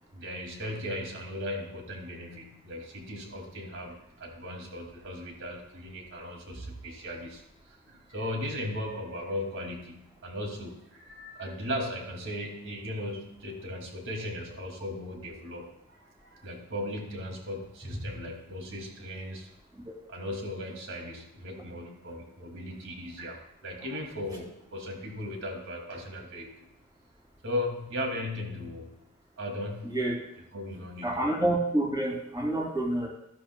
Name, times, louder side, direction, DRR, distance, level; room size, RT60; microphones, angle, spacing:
voice 1, 0.1-19.5 20.1-26.7 27.4-28.9 29.4-30.0 30.5-31.3, left 1 dB, 60° right, 1 dB, 2.3 m, -37 dB
voice 2, 29.8-30.2 31.0-33.1, right 1 dB, 20° right, -1 dB, 2.6 m, -28 dB
13.0 x 12.0 x 2.2 m, 0.81 s
head